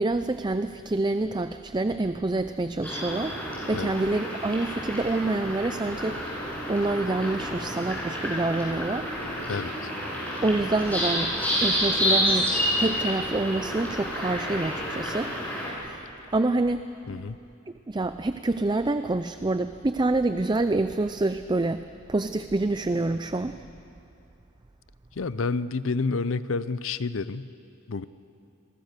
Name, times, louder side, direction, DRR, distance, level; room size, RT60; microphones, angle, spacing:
voice 1, 0.0-3.3 3.7-6.2 6.7-9.1 10.4-11.3 11.6-12.5 12.8-15.3 15.8-16.0 16.3-16.8 17.9-21.8 22.1-23.6, right 2 dB, 20° right, 10 dB, 0.5 m, -26 dB
sound 1, 2.8-15.7, equal, 10° left, 7.4 m, -29 dB
voice 2, 9.5-9.9 17.1-17.4 25.2-27.5 27.9-28.1, left 4 dB, 70° left, 15 dB, 0.6 m, -29 dB
28.0 x 22.5 x 6.7 m, 2.7 s
head